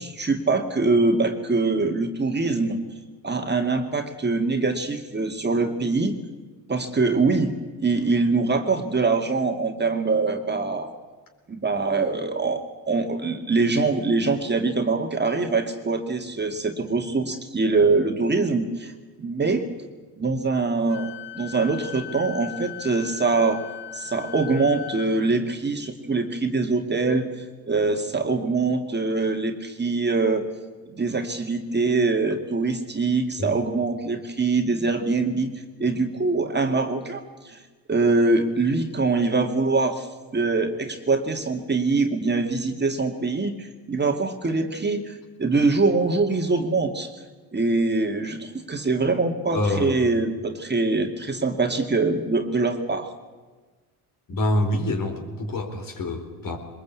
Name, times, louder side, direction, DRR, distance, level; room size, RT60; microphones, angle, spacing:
voice 1, 0.0-2.8 3.2-6.2 6.7-7.5 7.8-10.9 11.5-18.9 19.2-19.6 20.2-23.6 23.9-30.5 30.9-37.6 37.9-40.1 40.3-47.1 47.5-53.1, right 3 dB, 25° right, 4 dB, 2.2 m, -23 dB
Wind instrument woodwind instrument, 20.9-25.1, left 12 dB, 70° left, 1.2 m, -39 dB
voice 2, 49.5-50.0 54.3-56.6, left 1 dB, 50° left, 4 dB, 4.3 m, -26 dB
21.5 x 20.5 x 8.4 m, 1.3 s
supercardioid pair, 70°, 43 cm